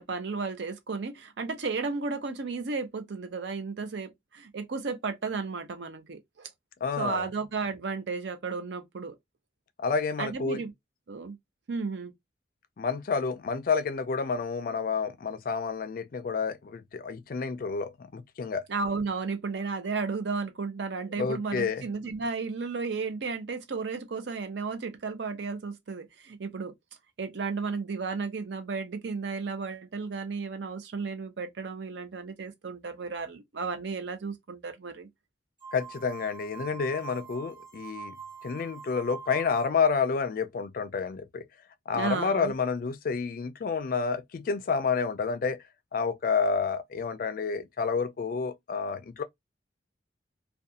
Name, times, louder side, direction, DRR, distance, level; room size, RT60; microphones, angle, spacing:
voice 1, 0.0-6.5 7.0-9.2 10.2-10.7 11.1-11.4 11.7-12.1 18.7-26.7 27.2-35.1 41.9-42.5, right 4 dB, 70° right, 0.6 m, -33 dB
voice 2, 6.8-7.3 9.8-10.6 12.8-18.7 21.2-21.8 35.7-38.2 38.4-41.5 41.9-45.6 45.9-49.2, left 5 dB, 50° left, 0.3 m, -29 dB
sound 1, 35.6-40.0, right 6 dB, 25° right, 1.1 m, -44 dB
2.4 x 2.2 x 2.7 m
head